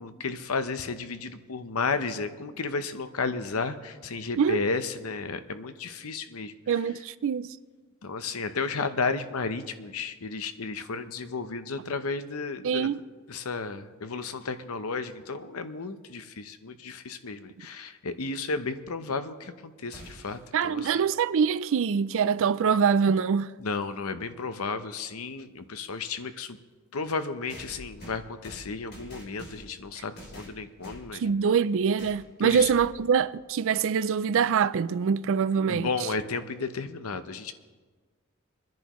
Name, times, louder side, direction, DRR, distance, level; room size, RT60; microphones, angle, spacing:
voice 1, 0.0-6.8 8.0-13.0 13.3-20.9 23.6-26.6 26.9-31.2 32.4-32.7 35.7-37.5, left 4 dB, 80° left, 0.8 m, -33 dB
voice 2, 6.7-7.5 12.6-12.9 20.5-23.5 31.2-35.9, right 6 dB, 65° right, 0.4 m, -24 dB
sound 1, 19.9-20.5 22.6-22.7 23.8-23.9 27.5-29.8 30.2-31.1 32.0-32.2 32.5-33.0, equal, 50° left, 3.0 m, -46 dB
26.0 x 10.5 x 3.1 m
head